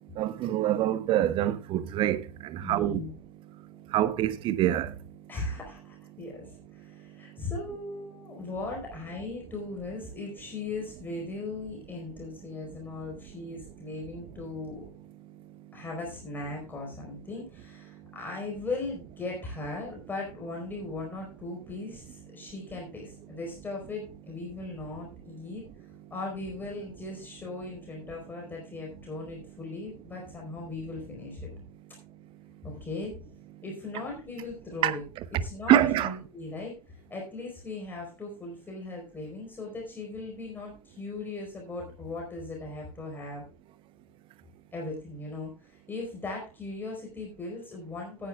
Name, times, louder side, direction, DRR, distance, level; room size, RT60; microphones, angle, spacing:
voice 1, 0.2-3.0 3.9-4.9 34.8-35.4 35.7-36.1, right 12 dB, 25° right, 0.9 m, -26 dB
voice 2, 2.6-3.1 5.3-14.8 15.7-25.6 26.1-31.4 32.6-33.1 33.6-35.0 35.4-36.7 37.1-43.4 44.7-48.3, left 3 dB, 10° left, 4.4 m, -38 dB
17.5 x 9.8 x 2.4 m
figure-of-eight pair, 100°, 19 cm